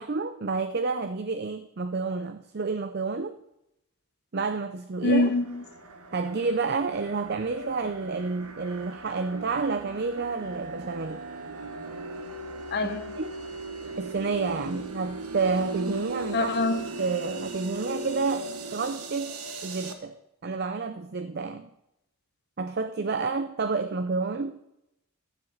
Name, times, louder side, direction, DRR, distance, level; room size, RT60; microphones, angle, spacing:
voice 1, 0.0-3.4 4.3-5.3 6.1-11.2 13.2-13.4 14.0-16.5 17.0-20.1 20.4-21.7 22.6-24.6, right 4 dB, 45° right, 9 dB, 0.5 m, -29 dB
voice 2, 5.0-5.6 12.7-13.0 16.3-16.8, left 2 dB, 45° left, 8 dB, 0.9 m, -24 dB
sound 1, 5.0-19.9, right 2 dB, 90° right, 1.4 m, -38 dB
13.5 x 7.5 x 6.5 m, 0.86 s
head